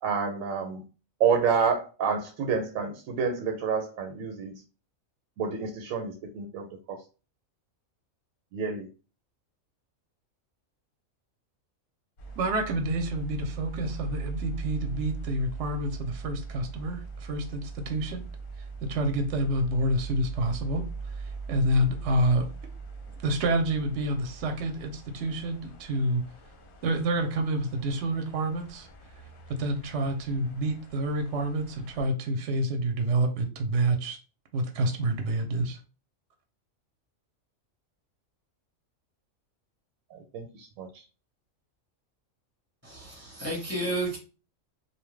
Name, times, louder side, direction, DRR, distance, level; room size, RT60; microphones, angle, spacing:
voice 1, 0.0-0.8 1.2-4.6 5.4-7.0 8.5-8.9 40.1-41.0, right 6 dB, 90° right, 3 dB, 1.0 m, -29 dB
sound 1, 12.2-32.1, right 4 dB, 50° left, 0.7 m, -41 dB
voice 2, 12.4-18.2 18.8-22.5 23.2-26.2 26.8-28.9 29.6-34.2 34.5-35.8, right 1 dB, 65° right, 5 dB, 0.8 m, -28 dB
voice 3, 42.8-44.2, right 1 dB, 15° left, -1 dB, 0.7 m, -32 dB
2.8 x 2.1 x 3.2 m, 0.33 s
omnidirectional pair, 1.4 m